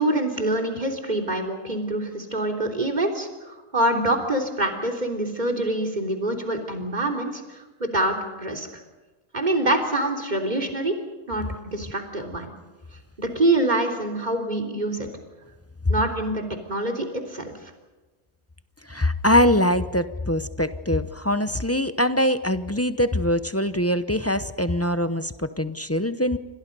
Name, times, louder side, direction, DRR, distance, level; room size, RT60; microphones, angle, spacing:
voice 1, 0.0-8.7 9.3-11.0 11.3-12.5 13.2-15.1 15.9-16.4 16.7-17.5, right 1 dB, 35° right, 3 dB, 3.6 m, -25 dB
voice 2, 18.9-26.4, left 1 dB, 15° left, 11 dB, 0.6 m, -23 dB
29.0 x 25.5 x 5.4 m, 1.2 s
omnidirectional pair, 1.4 m